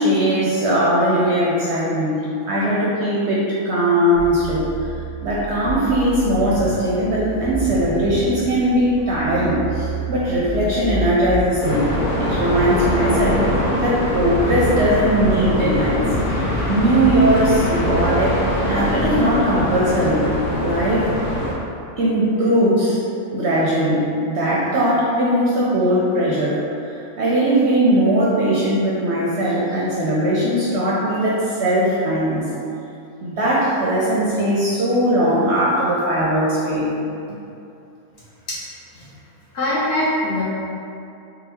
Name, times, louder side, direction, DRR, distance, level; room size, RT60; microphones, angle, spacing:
voice 1, 0.0-4.9 5.2-11.9 12.2-13.5 13.8-16.0 16.3-18.3 18.7-20.3 20.6-21.1 22.0-23.0 23.3-32.5 33.2-36.9, right 1 dB, 65° right, -7 dB, 0.7 m, -19 dB
sound 1, 4.1-19.0, right 1 dB, 20° right, 0.4 m, -30 dB
sound 2, 11.6-21.5, left 1 dB, 85° left, 1.2 m, -23 dB
voice 2, 39.5-40.4, left 1 dB, 55° left, -8 dB, 0.9 m, -22 dB
3.9 x 2.1 x 4.2 m, 2.7 s
omnidirectional pair, 1.5 m